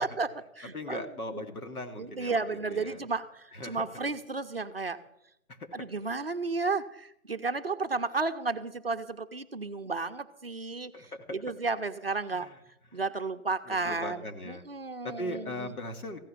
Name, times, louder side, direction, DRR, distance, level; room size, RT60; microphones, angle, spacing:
voice 1, 0.0-1.4 2.0-5.0 5.7-11.1 11.3-12.5 12.9-15.7, right 3 dB, 45° right, 8 dB, 0.6 m, -33 dB
voice 2, 0.7-2.4 2.7-3.0 3.5-3.8 5.5-5.6 10.9-11.2 12.3-12.6 12.9-13.0 13.7-14.6 15.0-16.2, left 1 dB, 75° left, 5 dB, 2.2 m, -39 dB
15.0 x 5.8 x 9.9 m, 0.81 s
hypercardioid pair, 170°, 44 cm